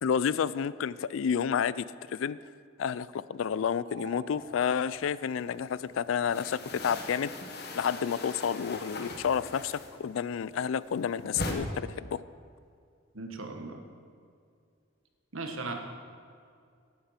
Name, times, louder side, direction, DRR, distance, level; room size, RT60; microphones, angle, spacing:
voice 1, 0.0-2.4 2.8-7.5 7.7-12.2, left 7 dB, 80° left, 18 dB, 0.4 m, -30 dB
sound 1, 3.8-5.0, right 2 dB, 70° right, 3.1 m, -48 dB
sound 2, 4.5-5.5 5.8-10.2 10.5-11.5, left 2 dB, 50° left, 1.2 m, -40 dB
voice 2, 13.1-13.8 15.3-15.7, right 3 dB, 90° right, 4 dB, 1.4 m, -37 dB
10.5 x 10.5 x 5.8 m, 2.3 s
head